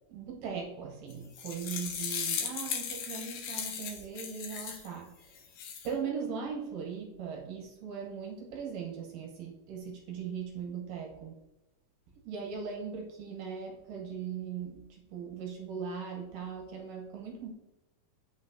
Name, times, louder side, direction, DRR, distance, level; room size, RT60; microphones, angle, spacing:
voice 1, 0.1-5.4 5.8-11.4 12.2-17.5, right 6 dB, 70° right, 0 dB, 2.3 m, -39 dB
sound 1, 1.1-4.9 5.4-5.9, left 7 dB, 70° left, 2.1 m, -37 dB
8.0 x 5.9 x 2.6 m, 0.96 s
omnidirectional pair, 4.3 m